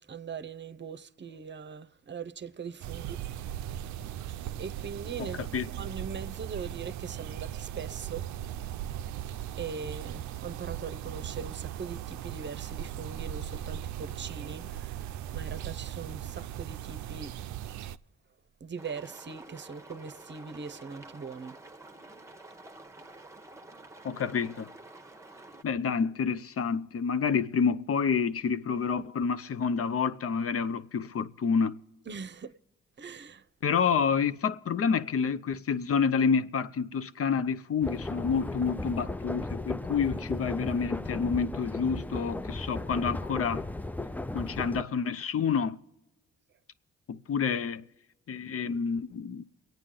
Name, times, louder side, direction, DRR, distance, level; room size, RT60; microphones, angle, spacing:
voice 1, 0.1-3.5 4.6-5.4 5.6-8.2 9.6-15.0 15.3-17.3 18.6-21.6 32.1-32.5 33.0-33.4, right 6 dB, 35° right, 0.8 m, -41 dB
sound 1, 2.8-18.0, right 11 dB, 70° right, 0.5 m, -38 dB
voice 2, 5.2-5.7 24.0-24.7 25.6-31.8 33.6-43.6 44.3-45.8 47.1-47.8 48.3-49.4, left 6 dB, 50° left, 0.7 m, -28 dB
sound 2, 18.8-25.6, right 2 dB, 10° right, 1.0 m, -49 dB
sound 3, 37.8-44.8, left 2 dB, 5° left, 0.4 m, -36 dB
24.0 x 9.0 x 3.8 m
supercardioid pair, 45°, 30 cm